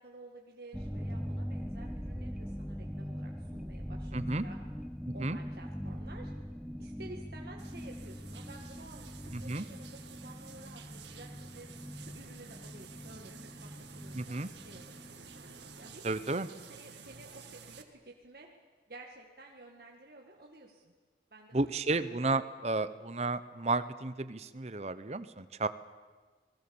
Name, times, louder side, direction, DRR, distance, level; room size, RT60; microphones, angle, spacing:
voice 1, 0.0-4.6 5.1-6.3 6.8-11.7 12.0-13.7 13.9-15.2 15.8-18.5 18.9-20.9 21.3-22.9, right 2 dB, 60° right, 0 dB, 1.9 m, -53 dB
sound 1, 0.7-15.9, equal, ahead, 0.6 m, -42 dB
voice 2, 4.1-4.4 5.1-5.4 9.3-9.6 14.1-14.5 16.0-16.5 21.5-25.7, right 3 dB, 35° right, 14 dB, 0.8 m, -32 dB
sound 2, 7.6-17.8, right 6 dB, 80° right, 1.9 m, -52 dB
29.0 x 20.5 x 7.1 m, 1.4 s
head